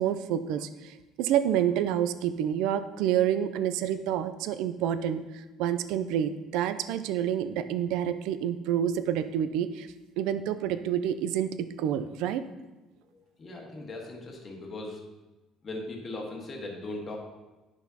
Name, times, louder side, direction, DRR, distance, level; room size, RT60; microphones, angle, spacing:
voice 1, 0.0-9.9 10.2-12.4, right 10 dB, 80° right, 12 dB, 0.4 m, -28 dB
voice 2, 13.1-15.0 15.6-17.2, left 2 dB, 35° left, 0 dB, 1.4 m, -39 dB
9.8 x 6.0 x 2.8 m, 1.1 s
cardioid pair, 125°, 0 cm